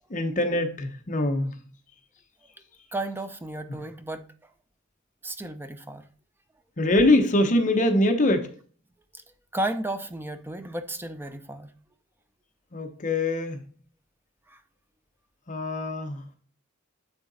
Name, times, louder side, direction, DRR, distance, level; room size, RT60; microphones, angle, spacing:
voice 1, 0.1-1.6 3.7-3.8 6.8-8.5 12.7-13.6 15.5-16.4, left 1 dB, 40° left, 0.9 m, -23 dB
voice 2, 2.9-4.2 5.2-6.0 9.5-11.7 14.5-14.6, right 1 dB, 10° right, 0.5 m, -33 dB
9.6 x 3.8 x 4.0 m
head